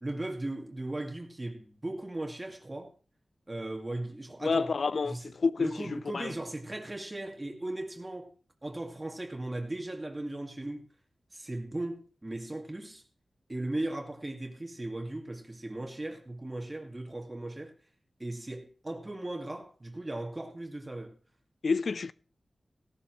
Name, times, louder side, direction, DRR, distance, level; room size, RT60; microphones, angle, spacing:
voice 1, 0.0-2.9 3.5-4.7 5.0-8.3 8.6-10.8 11.3-13.0 13.5-17.7 18.2-21.1, right 1 dB, 20° right, 2.1 m, -37 dB
voice 2, 4.4-6.3 21.6-22.1, left 4 dB, 70° left, 0.5 m, -29 dB
17.0 x 12.5 x 3.2 m
wide cardioid pair, 105°, 0 cm